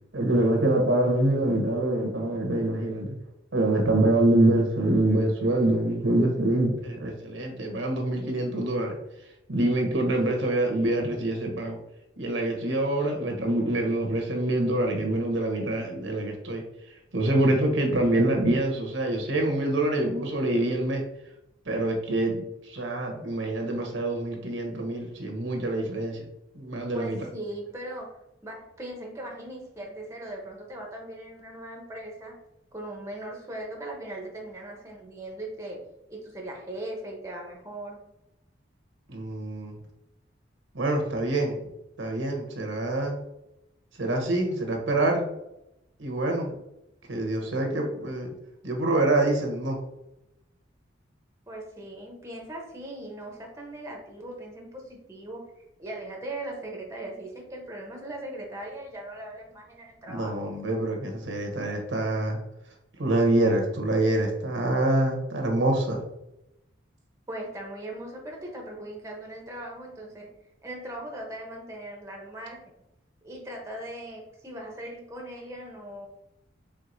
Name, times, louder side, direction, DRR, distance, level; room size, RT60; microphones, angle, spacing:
voice 1, 0.1-3.2 3.5-9.0 9.5-11.8 12.2-16.6 17.1-21.0 21.7-26.3 26.5-27.2 39.1-39.7 40.7-41.6 42.0-43.2 44.0-45.3 46.0-46.6 47.1-48.3 48.6-49.8 60.1-62.4 63.0-66.0, right 1 dB, 80° right, 2 dB, 1.0 m, -25 dB
voice 2, 26.9-32.3 32.7-35.8 36.1-38.0 51.5-60.4 67.3-70.3 70.6-72.7 73.2-76.1, right 1 dB, 15° right, 0 dB, 0.7 m, -39 dB
4.5 x 3.8 x 2.6 m, 0.87 s
head